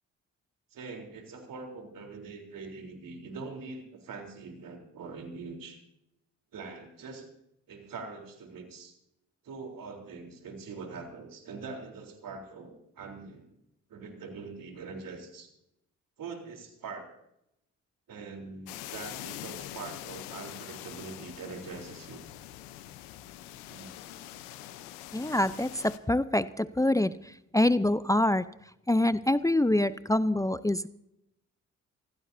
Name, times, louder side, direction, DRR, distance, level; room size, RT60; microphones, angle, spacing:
voice 1, 0.7-5.8 6.5-7.3 7.7-9.0 9.4-13.5 13.9-15.5 16.2-17.1 18.1-22.2 23.7-24.2, right 4 dB, 65° right, 3 dB, 3.9 m, -43 dB
sound 1, 18.7-26.0, left 13 dB, 90° left, 0.9 m, -44 dB
voice 2, 25.1-28.5 28.9-30.9, left 1 dB, 10° left, 15 dB, 0.7 m, -26 dB
25.0 x 16.0 x 2.8 m, 0.82 s
hypercardioid pair, 45°, 35 cm